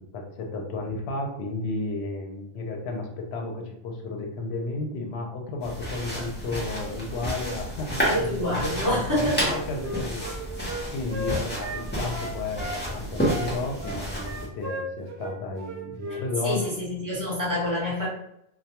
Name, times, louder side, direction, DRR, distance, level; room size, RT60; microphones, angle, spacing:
voice 1, 0.1-10.3 10.9-16.6, left 3 dB, 75° left, 1 dB, 0.8 m, -33 dB
sound 1, 5.6-14.5, equal, 10° left, 0.7 m, -31 dB
voice 2, 8.0-9.4 16.1-18.1, left 1 dB, 20° right, -8 dB, 0.9 m, -27 dB
Wind instrument woodwind instrument, 9.4-12.8 13.2-16.3 16.5-16.8, left 1 dB, 70° right, 0.8 m, -36 dB
2.2 x 2.2 x 2.8 m, 0.75 s
omnidirectional pair, 1.1 m